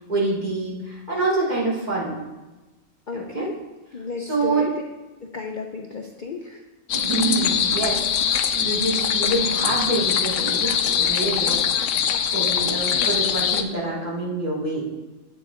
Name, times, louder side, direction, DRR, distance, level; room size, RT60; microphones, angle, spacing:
voice 1, 0.1-2.1 3.1-3.4 4.3-4.6 6.9-8.0 8.3-11.6 12.3-14.9, right 2 dB, 35° right, -7 dB, 3.0 m, -26 dB
voice 2, 3.1-3.6 3.9-4.8 5.2-6.6, left 4 dB, 45° left, 2 dB, 0.7 m, -33 dB
sound 1, 6.9-13.6, left 8 dB, 70° left, 1.0 m, -22 dB
12.5 x 8.1 x 3.6 m, 1.1 s
omnidirectional pair, 1.4 m